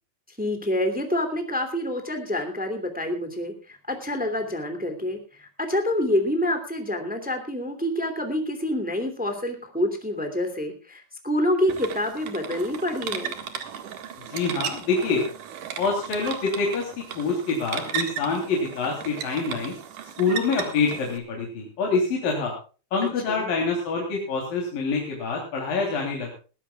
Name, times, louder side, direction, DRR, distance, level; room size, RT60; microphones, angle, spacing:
voice 1, 0.4-13.4 23.0-23.5, left 1 dB, 5° right, 5 dB, 1.1 m, -27 dB
sound 1, 11.7-21.2, right 8 dB, 55° right, 2.7 m, -35 dB
voice 2, 14.3-15.2 15.8-19.7 20.2-22.5 22.9-26.3, left 4 dB, 50° left, 0 dB, 4.7 m, -26 dB
21.5 x 16.0 x 2.3 m, 0.36 s
omnidirectional pair, 5.3 m